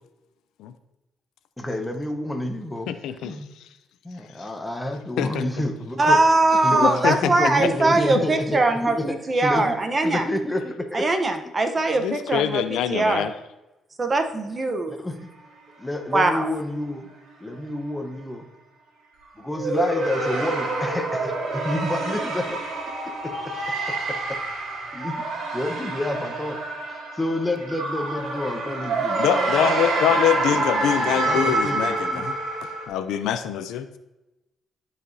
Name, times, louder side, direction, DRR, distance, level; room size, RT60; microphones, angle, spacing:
voice 1, 1.6-2.9 3.2-3.5 4.0-6.2 6.6-9.8 10.0-11.1 12.9-13.1 14.9-15.2 15.8-17.1 17.4-18.4 19.4-22.6 23.2-23.5 24.1-24.4 24.9-26.6 26.9-29.8 30.1-30.2 30.5-32.3, left 1 dB, 15° left, 5 dB, 1.0 m, -29 dB
voice 2, 2.9-3.4 5.2-5.4 6.7-7.7 11.9-13.3 29.2-32.3 32.9-34.0, left 10 dB, 85° left, 11 dB, 0.4 m, -24 dB
voice 3, 6.0-10.2 10.9-13.3 14.0-15.0 16.1-16.4, right 2 dB, 30° right, 7 dB, 0.8 m, -21 dB
sound 1, 19.5-32.9, right 2 dB, 70° right, 2.3 m, -27 dB
13.0 x 4.9 x 2.7 m, 0.98 s
cardioid pair, 90°, 0 cm